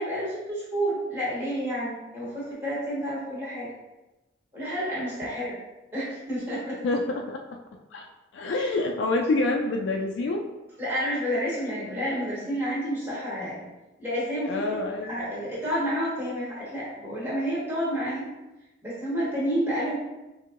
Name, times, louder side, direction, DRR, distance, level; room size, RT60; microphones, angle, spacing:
voice 1, 0.0-3.7 4.5-5.6 5.9-6.8 10.8-13.7 14.0-18.3 18.8-20.0, equal, 10° right, -9 dB, 1.3 m, -30 dB
voice 2, 6.8-7.4 7.9-8.1 8.3-10.4 14.5-15.1, left 2 dB, 70° left, 2 dB, 0.3 m, -27 dB
4.5 x 2.7 x 2.5 m, 1.0 s
head